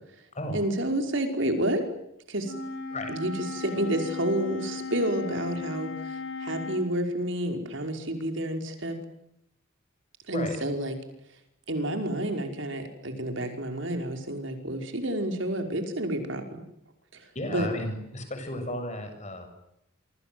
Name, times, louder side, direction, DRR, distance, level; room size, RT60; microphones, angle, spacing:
voice 1, 0.5-1.8 2.3-2.5 3.1-9.0 10.3-10.9 11.7-16.6 17.5-17.7, right 1 dB, 60° right, 5 dB, 5.5 m, -29 dB
Wind instrument woodwind instrument, 2.4-6.9, left 4 dB, 70° left, 5.9 m, -36 dB
voice 2, 17.3-19.5, left 1 dB, 35° left, 7 dB, 7.7 m, -34 dB
28.0 x 26.0 x 8.0 m, 0.80 s
head